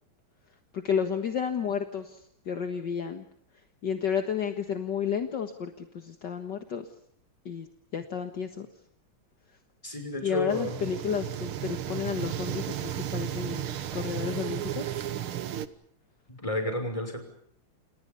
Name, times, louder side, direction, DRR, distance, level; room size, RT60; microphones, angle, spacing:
voice 1, 0.7-3.3 3.8-6.9 7.5-7.7 7.9-8.7 10.2-14.9, left 7 dB, 60° left, 6 dB, 2.2 m, -32 dB
voice 2, 9.8-10.8 16.3-17.2, left 1 dB, 15° left, 6 dB, 6.2 m, -31 dB
sound 1, 10.5-15.7, right 11 dB, 90° right, 2.1 m, -34 dB
30.0 x 29.0 x 5.5 m, 0.68 s
omnidirectional pair, 2.3 m